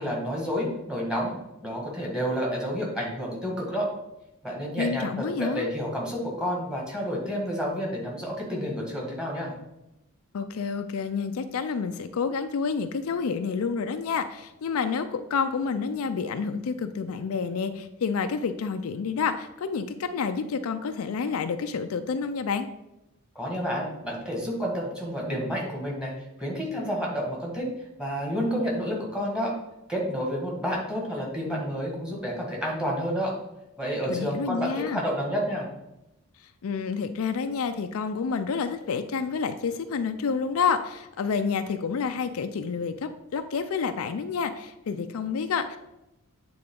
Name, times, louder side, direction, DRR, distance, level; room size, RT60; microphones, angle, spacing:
voice 1, 0.0-1.3 1.6-3.9 4.4-9.5 23.3-26.1 26.4-27.7 28.0-29.5 29.9-33.3 33.8-35.7, equal, 5° right, -3 dB, 1.7 m, -30 dB
voice 2, 4.8-5.7 10.3-22.7 34.1-35.0 36.6-45.8, left 5 dB, 70° left, 9 dB, 0.4 m, -29 dB
8.7 x 3.8 x 3.8 m, 0.90 s
head